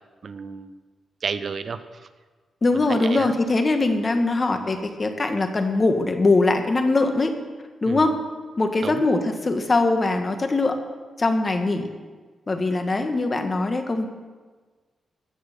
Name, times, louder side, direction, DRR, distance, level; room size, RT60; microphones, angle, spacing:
voice 1, 0.2-0.7 1.2-1.8 2.7-3.3 7.9-8.1 8.8-9.0, right 5 dB, 55° right, 12 dB, 0.7 m, -31 dB
voice 2, 2.6-7.3 7.8-8.2 8.6-10.8 11.2-11.9 12.5-14.1, left 2 dB, 35° left, 6 dB, 1.6 m, -22 dB
16.0 x 6.6 x 6.9 m, 1.4 s
cardioid pair, 70°, 0 cm